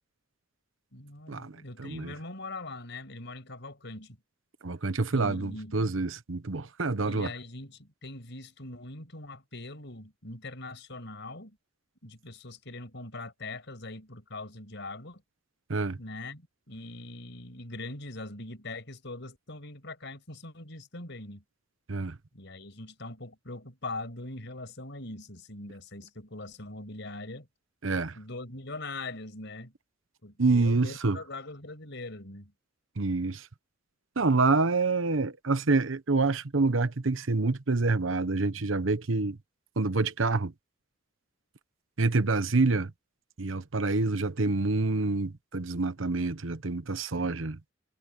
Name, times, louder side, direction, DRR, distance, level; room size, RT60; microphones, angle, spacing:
voice 1, 0.9-4.2 5.1-5.7 7.0-11.6 12.0-15.2 16.0-21.4 22.3-27.5 28.1-29.7 30.2-32.5 47.1-47.3, left 2 dB, 65° left, 6.5 m, -42 dB
voice 2, 1.8-2.1 4.6-7.3 15.7-16.0 21.9-22.1 27.8-28.2 30.4-31.2 33.0-33.5 34.2-39.4 39.8-40.5 42.0-42.9 43.4-47.6, right 3 dB, 85° right, 1.0 m, -27 dB
head